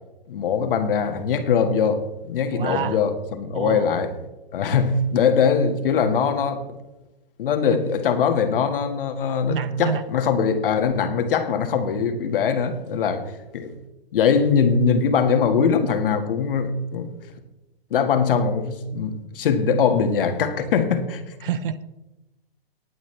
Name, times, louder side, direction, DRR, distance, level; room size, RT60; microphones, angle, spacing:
voice 1, 0.3-2.0 2.3-4.1 4.5-6.6 7.4-13.7 14.1-17.1 17.9-21.2, left 6 dB, 60° left, 7 dB, 1.8 m, -22 dB
voice 2, 2.5-3.0 3.5-3.9 7.7-7.8 9.5-10.0 21.4-21.8, right 8 dB, 60° right, 15 dB, 1.0 m, -27 dB
19.0 x 9.1 x 3.3 m, 1.0 s
hypercardioid pair, 135°, 31 cm